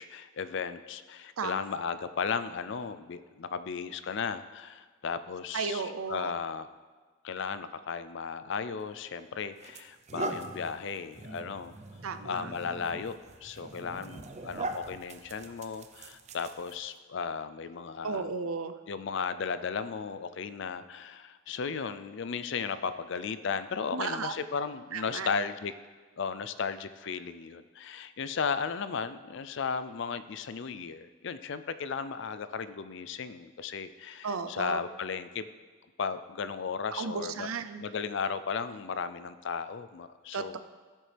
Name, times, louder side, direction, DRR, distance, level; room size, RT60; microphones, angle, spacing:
voice 1, 0.0-5.8 6.1-6.7 7.2-11.8 12.2-18.3 18.9-25.7 26.2-35.5 36.0-37.5 37.8-40.6, left 6 dB, 60° left, 12 dB, 0.4 m, -35 dB
voice 2, 5.5-6.3 12.0-12.5 18.0-18.7 23.9-24.3 24.9-25.3 34.2-34.8 36.9-37.8 40.3-40.6, right 5 dB, 90° right, 10 dB, 0.6 m, -34 dB
sound 1, 8.8-9.0 9.6-17.0, right 2 dB, 35° right, 0.6 m, -41 dB
14.0 x 7.6 x 3.4 m, 1.4 s
head